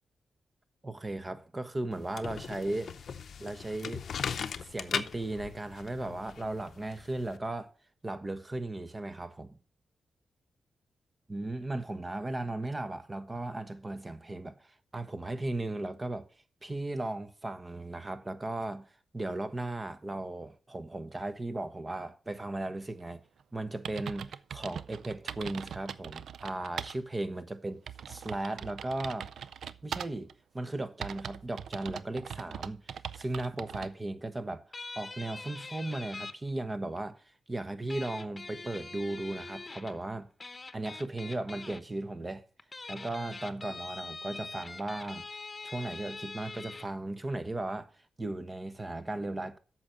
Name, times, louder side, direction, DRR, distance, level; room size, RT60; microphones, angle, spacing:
voice 1, 0.8-2.9 3.4-4.0 4.6-7.7 8.0-9.6 11.3-16.3 16.6-18.9 19.1-23.2 23.5-27.8 28.1-29.3 29.8-32.8 33.1-34.6 35.0-37.2 37.5-40.3 40.7-42.4 42.9-45.3 45.6-47.9 48.2-49.6, right 2 dB, 30° right, 1.2 m, -36 dB
sound 1, 1.9-7.4, left 7 dB, 70° left, 0.7 m, -39 dB
sound 2, 23.4-23.5 23.8-27.0 27.4-27.5 27.9-30.3 31.0-33.9, right 8 dB, 75° right, 0.4 m, -41 dB
sound 3, 34.7-36.3 37.9-40.0 40.4-41.8 42.6-46.8, left 3 dB, 35° left, 0.9 m, -43 dB
8.5 x 6.1 x 6.7 m
cardioid pair, 55°, 0 cm